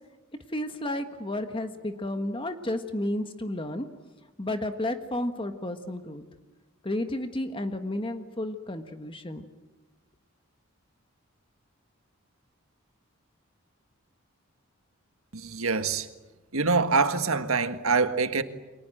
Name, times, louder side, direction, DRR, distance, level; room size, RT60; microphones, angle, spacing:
voice 1, 0.5-3.9 4.4-6.2 6.8-9.4, left 1 dB, 25° left, 1.5 m, -32 dB
voice 2, 15.3-16.1 16.5-18.4, right 4 dB, 90° right, 1.7 m, -25 dB
29.5 x 24.0 x 7.9 m
head